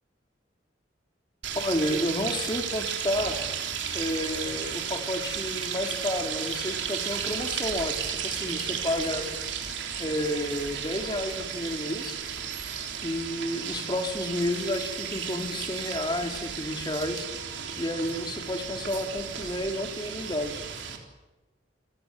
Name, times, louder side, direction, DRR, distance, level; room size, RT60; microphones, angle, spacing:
sound 1, 1.4-21.0, right 7 dB, 80° right, 3.7 m, -34 dB
voice 1, 1.5-3.4 3.9-9.2 10.0-12.2 13.0-17.3 17.8-20.6, left 1 dB, 25° left, 4 dB, 3.1 m, -31 dB
28.5 x 16.0 x 9.8 m, 1.1 s
head